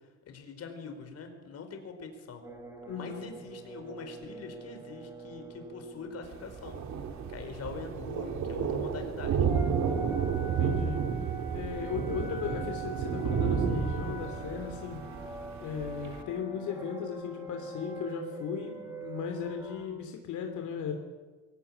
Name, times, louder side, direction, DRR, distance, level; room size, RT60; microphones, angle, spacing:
voice 1, 0.3-2.4 2.9-6.8 7.3-9.5, left 5 dB, 55° left, 5 dB, 4.6 m, -43 dB
sound 1, 2.4-19.9, right 2 dB, 10° right, 4.1 m, -45 dB
voice 2, 2.9-3.3 10.6-11.0 11.5-15.0 15.6-20.9, left 7 dB, 85° left, 4 dB, 3.0 m, -36 dB
Thunder, 6.2-16.2, right 6 dB, 70° right, 2.8 m, -32 dB
23.0 x 17.0 x 9.9 m, 1.4 s
cardioid pair, 155°, 29 cm